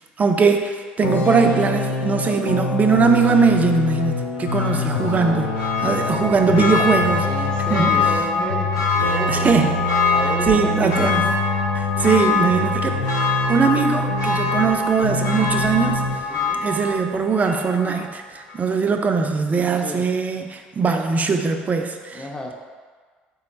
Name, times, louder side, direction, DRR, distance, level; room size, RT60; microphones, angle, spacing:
voice 1, 0.2-7.3 7.7-8.0 9.3-9.8 10.5-11.3 11.7-13.0 13.5-16.0 16.6-22.2, right 5 dB, 30° right, 5 dB, 0.4 m, -20 dB
sound 1, 1.0-14.8 15.0-16.2, left 3 dB, 90° left, 0.3 m, -25 dB
sound 2, 2.1-7.9 10.4-11.2, equal, 85° right, 0.7 m, -39 dB
Church bell, 4.4-18.1 18.5-18.6, left 3 dB, 65° left, 0.9 m, -24 dB
voice 2, 4.6-5.2 7.2-9.5 10.1-11.0 16.3-16.6 19.8-20.0 22.1-22.5, equal, 15° left, 0 dB, 0.6 m, -32 dB
3.7 x 2.1 x 4.0 m, 1.5 s
hypercardioid pair, 60°, 5 cm